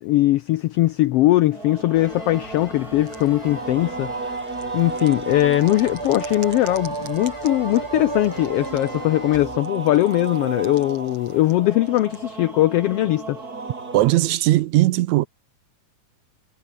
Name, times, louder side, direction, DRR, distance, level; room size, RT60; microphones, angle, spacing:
voice 1, 0.0-4.4 4.7-13.4, left 16 dB, 85° left, 1.3 m, -20 dB
sound 1, 1.5-14.0, right 3 dB, 30° right, 3.8 m, -33 dB
sound 2, 1.9-9.8 10.1-11.6, left 2 dB, 20° left, 0.9 m, -44 dB
sound 3, 2.7-3.5 4.1-9.0 9.6-12.2, right 5 dB, 50° right, 4.9 m, -46 dB
voice 2, 13.9-15.3, right 16 dB, 75° right, 2.0 m, -18 dB
omnidirectional pair, 3.4 m